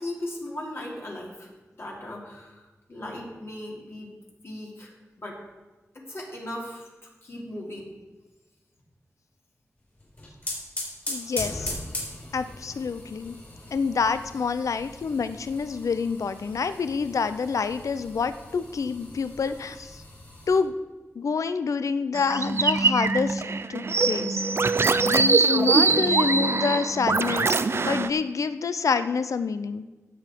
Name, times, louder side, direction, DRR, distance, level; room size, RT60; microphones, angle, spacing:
voice 1, 0.0-1.5 1.8-4.2 4.4-5.4 6.1-7.9, left 1 dB, 50° left, -2 dB, 3.1 m, -38 dB
sound 1, 10.0-20.6, left 1 dB, 35° left, 4.6 m, -39 dB
voice 2, 11.1-11.8 12.3-13.4 13.7-20.0 20.5-20.7 21.2-23.4 23.7-24.4 25.0-29.9, left 5 dB, 80° left, 12 dB, 0.5 m, -27 dB
sound 2, 22.1-28.1, right 4 dB, 50° right, 0.5 m, -23 dB
17.0 x 7.2 x 4.5 m, 1.2 s
wide cardioid pair, 110°, 5 cm